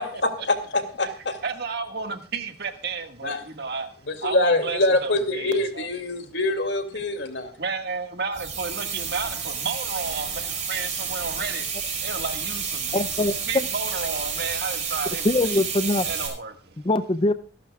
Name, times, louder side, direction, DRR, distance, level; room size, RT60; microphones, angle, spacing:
voice 1, 0.0-1.4 3.2-3.4 4.1-7.5, left 2 dB, 65° left, 2.5 m, -25 dB
voice 2, 1.4-3.9 4.2-5.9 7.6-11.7 12.0-15.6 16.0-16.8, right 4 dB, 60° right, 1.9 m, -32 dB
sound 1, 8.3-16.3, right 6 dB, 40° right, 4.8 m, -30 dB
voice 3, 12.9-13.6 15.2-16.1 16.8-17.3, left 2 dB, 30° left, 0.5 m, -22 dB
25.5 x 12.0 x 2.4 m
head